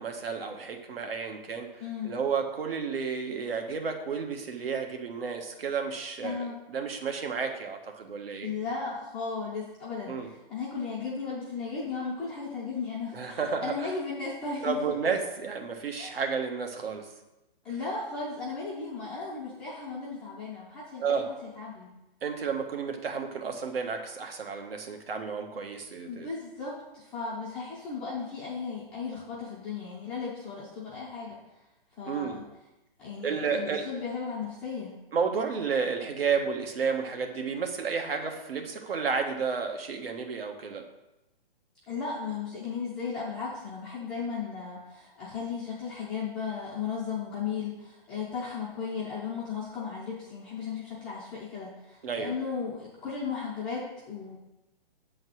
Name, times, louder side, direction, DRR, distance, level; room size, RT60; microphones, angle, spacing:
voice 1, 0.0-8.5 10.1-10.3 13.1-13.9 14.6-17.1 21.0-21.3 22.2-26.3 32.1-32.4 33.2-33.9 35.1-40.9 52.0-52.3, right 5 dB, 80° right, 4 dB, 1.4 m, -31 dB
voice 2, 1.8-2.1 6.2-6.5 8.4-14.8 16.0-16.2 17.6-21.9 26.0-31.4 32.0-32.4 33.0-34.9 41.9-54.4, left 5 dB, 5° left, -9 dB, 0.3 m, -35 dB
8.0 x 4.0 x 6.2 m, 0.95 s
hypercardioid pair, 160°, 29 cm